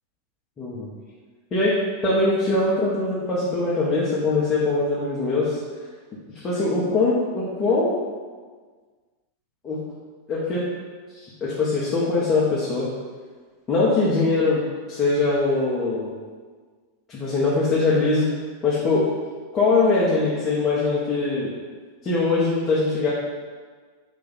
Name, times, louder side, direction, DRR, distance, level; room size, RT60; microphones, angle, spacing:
voice 1, 0.6-0.9 1.5-5.6 6.3-8.0 9.6-9.8 10.3-10.7 11.1-12.9 13.7-14.6 14.9-16.1 17.1-18.3 18.6-19.1 19.5-21.5 22.0-23.1, left 3 dB, 25° left, -7 dB, 0.8 m, -22 dB
4.0 x 2.5 x 4.1 m, 1.5 s
figure-of-eight pair, 90°, 0 cm